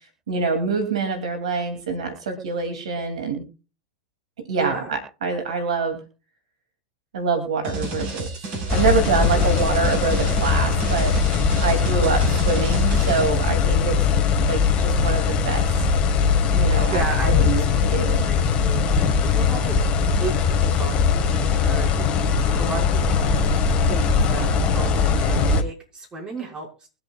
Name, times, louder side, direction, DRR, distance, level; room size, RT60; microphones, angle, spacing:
voice 1, 0.3-3.4 4.5-6.0 7.1-8.3 8.7-14.0 14.5-15.7 16.5-18.3, right 4 dB, 80° right, 6 dB, 2.8 m, -25 dB
voice 2, 4.6-4.9 9.3-9.5 16.9-19.8 20.2-23.5 23.9-26.9, right 3 dB, 25° right, -1 dB, 5.6 m, -34 dB
sound 1, 7.6-13.3, right 3 dB, 45° right, 7.5 m, -30 dB
sound 2, 8.7-25.6, left 5 dB, 35° left, 1.7 m, -20 dB
23.0 x 7.8 x 2.4 m, 0.34 s
hypercardioid pair, 100°, 3 cm